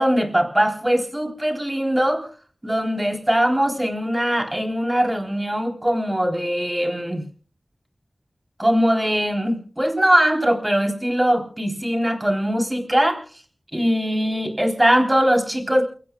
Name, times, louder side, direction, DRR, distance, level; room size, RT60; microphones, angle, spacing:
voice 1, 0.0-2.3 2.6-7.3 8.6-13.2 13.7-15.8, equal, 20° right, 3 dB, 3.8 m, -21 dB
28.5 x 17.5 x 2.4 m, 0.41 s
wide cardioid pair, 55°, 0 cm